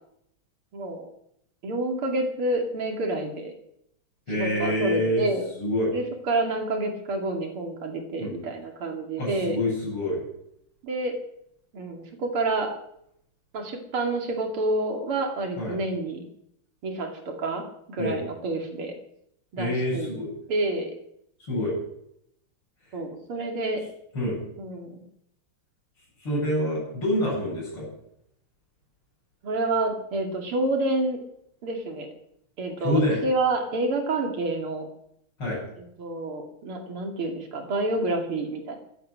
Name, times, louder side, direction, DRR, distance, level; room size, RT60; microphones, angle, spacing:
voice 1, 0.7-1.1 1.6-3.5 4.3-5.5 5.9-9.6 10.8-11.2 11.7-12.7 13.5-16.3 16.8-19.0 19.5-20.1 20.5-20.9 22.9-23.8 24.6-25.0 29.4-31.2 31.6-32.1 32.6-34.9 36.0-38.8, right 2 dB, 85° right, 3 dB, 3.6 m, -28 dB
voice 2, 4.3-5.2 5.5-5.9 8.2-8.4 9.2-10.2 15.6-15.8 18.0-18.2 19.6-20.3 21.4-21.8 24.1-24.4 26.2-27.9 32.8-33.2 35.4-35.6, left 1 dB, 80° left, -7 dB, 8.5 m, -26 dB
16.5 x 12.5 x 6.6 m, 0.73 s
omnidirectional pair, 2.4 m